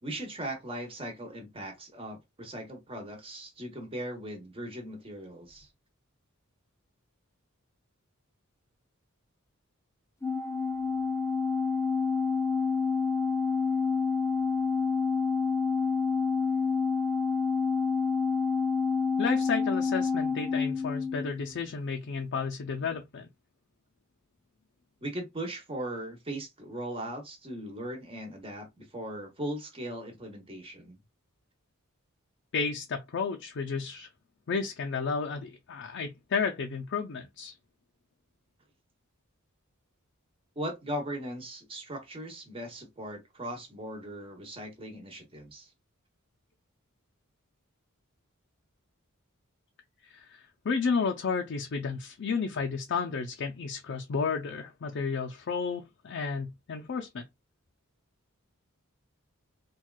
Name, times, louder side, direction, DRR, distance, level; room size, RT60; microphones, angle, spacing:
voice 1, 0.0-5.7 25.0-31.0 40.5-45.7, right 1 dB, 25° right, 1.1 m, -39 dB
Organ, 10.2-21.5, left 5 dB, 10° left, 0.6 m, -28 dB
voice 2, 19.2-23.3 32.5-34.1 34.5-37.5 50.1-57.2, left 5 dB, 55° left, 0.5 m, -32 dB
4.3 x 2.3 x 2.3 m
head